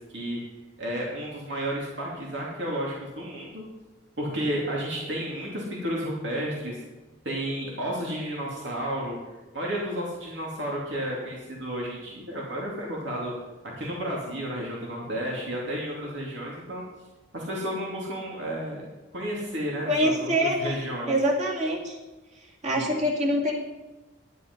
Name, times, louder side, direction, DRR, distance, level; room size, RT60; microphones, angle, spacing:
voice 1, 0.1-0.4 0.8-3.6 4.2-6.8 7.2-9.2 9.5-13.3 13.6-16.8 17.3-18.8 19.1-21.1, equal, 75° right, -3 dB, 2.6 m, -32 dB
voice 2, 19.9-20.7 21.1-22.0 22.6-23.5, equal, 35° right, -2 dB, 2.5 m, -25 dB
11.0 x 10.5 x 5.3 m, 1.2 s
head